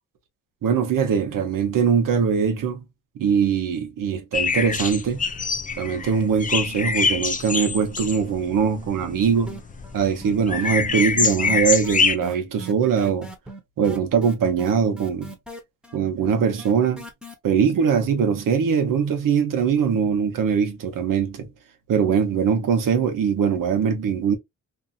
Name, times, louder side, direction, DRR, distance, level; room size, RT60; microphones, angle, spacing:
voice 1, 0.6-2.8 3.2-5.2 5.8-9.6 9.9-13.3 13.8-15.3 15.9-17.0 17.4-21.5 21.9-24.4, right 7 dB, 85° right, 0.8 m, -22 dB
sound 1, 4.3-12.2, left 5 dB, 25° left, 0.4 m, -25 dB
sound 2, 9.5-10.0 10.2-17.3, right 1 dB, 5° right, 0.9 m, -39 dB
2.7 x 2.6 x 2.4 m
cardioid pair, 75°, 32 cm